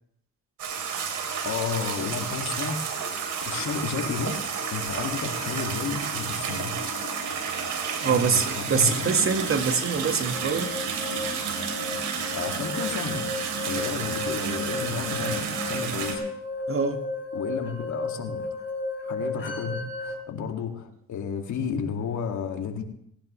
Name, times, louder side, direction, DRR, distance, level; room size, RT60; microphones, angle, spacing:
sound 1, 0.6-16.1, right 5 dB, 80° right, 3.7 m, -31 dB
voice 1, 1.4-2.9 3.5-4.4 4.7-6.7 8.1-9.2 12.3-13.2 13.6-16.2 17.3-18.4 19.0-22.8, left 6 dB, 70° left, 3 dB, 2.5 m, -32 dB
voice 2, 8.0-10.7 16.7-17.0, right 5 dB, 45° right, 6 dB, 1.9 m, -24 dB
sound 2, 10.3-20.2, left 2 dB, 40° left, 3.5 m, -34 dB
19.0 x 17.5 x 3.3 m, 0.70 s
cardioid pair, 90°, 30 cm